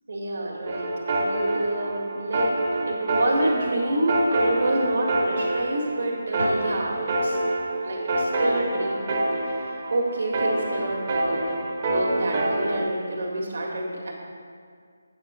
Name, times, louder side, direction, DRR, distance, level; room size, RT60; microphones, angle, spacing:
voice 1, 0.1-2.5 2.9-7.4 7.8-9.2 9.6-14.1, right 1 dB, 60° right, -1 dB, 1.8 m, -28 dB
sound 1, 0.7-12.8, right 2 dB, 35° right, 1.1 m, -27 dB
sound 2, 6.4-8.3, right 1 dB, 80° right, 0.5 m, -32 dB
8.7 x 5.7 x 4.3 m, 2.1 s
figure-of-eight pair, 160°, 0 cm